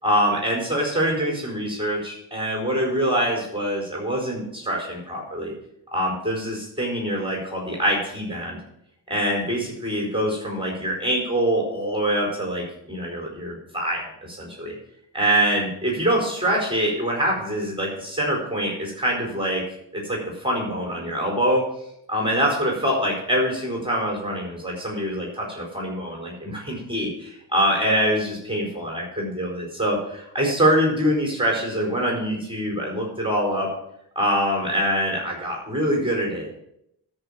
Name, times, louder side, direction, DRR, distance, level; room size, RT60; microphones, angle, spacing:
voice 1, 0.0-5.5 5.9-8.6 9.1-14.7 15.1-19.6 19.9-21.6 22.1-33.7 34.1-36.6, equal, 10° right, -2 dB, 4.6 m, -24 dB
13.0 x 5.8 x 7.3 m, 0.77 s
cardioid pair, 60°, 45 cm